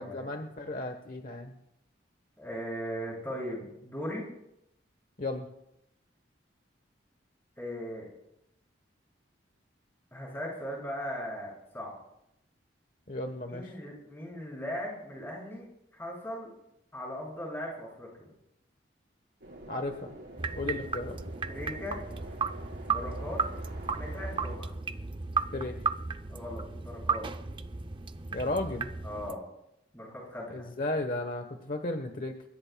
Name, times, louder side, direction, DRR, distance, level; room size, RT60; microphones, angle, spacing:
voice 1, 0.0-1.5 5.2-5.5 13.1-13.7 19.7-20.2 20.5-21.2 25.5-25.8 28.3-28.9 30.5-32.4, left 2 dB, 45° left, 5 dB, 1.1 m, -34 dB
voice 2, 2.4-4.3 7.6-8.1 10.1-11.9 13.5-15.7 15.9-16.5 16.9-18.3 21.5-22.0 22.8-23.4 23.9-24.7 26.3-27.3 29.0-29.4 29.9-30.7, equal, 10° left, -3 dB, 6.7 m, -38 dB
sound 1, 19.4-24.6, right 1 dB, 75° right, 4.5 m, -47 dB
sound 2, 20.4-29.4, right 4 dB, 25° right, 0.5 m, -34 dB
29.0 x 16.0 x 2.3 m, 0.82 s
head